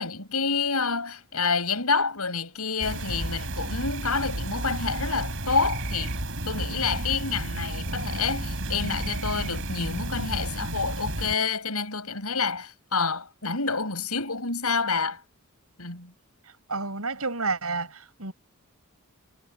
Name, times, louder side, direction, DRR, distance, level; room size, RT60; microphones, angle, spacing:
voice 1, 0.0-6.2 6.5-15.2 15.8-16.1, left 4 dB, 85° left, 7.6 m, -28 dB
sound 1, 2.8-11.3, right 1 dB, 60° right, 5.7 m, -32 dB
voice 2, 16.7-18.3, right 3 dB, 85° right, 6.6 m, -30 dB
head